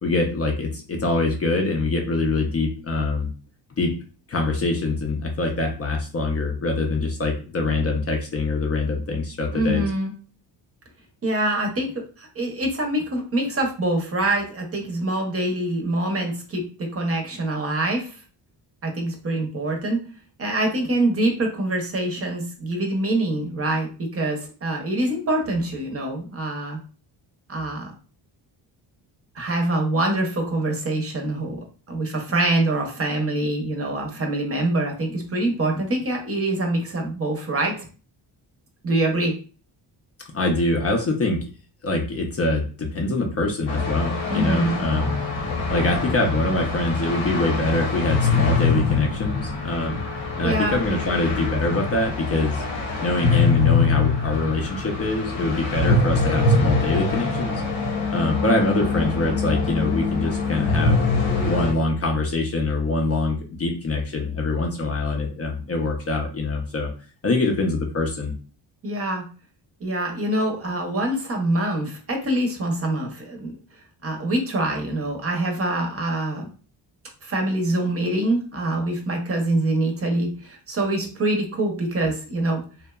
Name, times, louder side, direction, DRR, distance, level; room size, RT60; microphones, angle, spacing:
voice 1, 0.0-3.3 3.8-3.9 4.3-9.9 40.3-41.4 41.8-45.2 45.7-50.0 50.4-52.6 53.0-57.6 58.1-61.0 61.4-66.9 67.2-68.3, left 2 dB, 35° left, 2 dB, 0.5 m, -24 dB
voice 2, 9.5-10.1 11.2-18.2 18.8-20.0 20.4-26.8 27.5-27.9 29.3-31.6 31.9-37.7 38.8-39.4 44.3-44.8 50.4-50.8 68.8-69.2 69.8-73.6 74.0-76.5 77.2-82.6, right 1 dB, 30° right, 2 dB, 0.7 m, -25 dB
sound 1, 43.7-61.7, left 3 dB, 85° left, 0.9 m, -24 dB
2.8 x 2.1 x 2.2 m, 0.37 s
cardioid pair, 90°, 45 cm